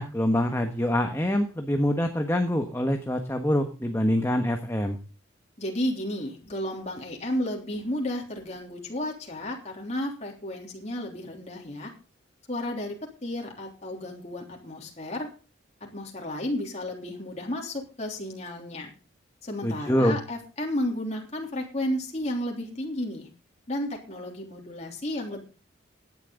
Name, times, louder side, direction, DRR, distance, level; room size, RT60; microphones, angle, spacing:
voice 1, 0.0-5.0 19.6-20.2, equal, 10° left, 5 dB, 1.3 m, -25 dB
voice 2, 5.6-11.9 12.5-15.3 15.8-18.9 19.4-23.3 23.7-25.4, left 1 dB, 30° left, 0 dB, 3.4 m, -32 dB
17.5 x 10.5 x 3.9 m, 0.35 s
head